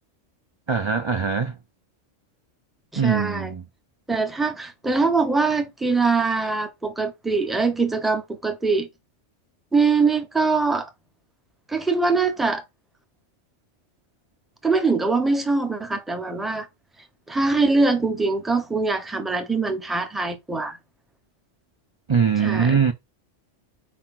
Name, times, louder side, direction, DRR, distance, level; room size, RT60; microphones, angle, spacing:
voice 1, 0.7-1.6 3.0-3.6 22.1-22.9, right 6 dB, 30° right, 0.6 m, -22 dB
voice 2, 2.9-3.5 4.1-8.9 9.7-10.9 11.7-12.6 14.6-16.7 17.3-20.8 22.4-22.9, right 4 dB, ahead, 0.8 m, -23 dB
4.8 x 4.0 x 5.8 m
omnidirectional pair, 1.2 m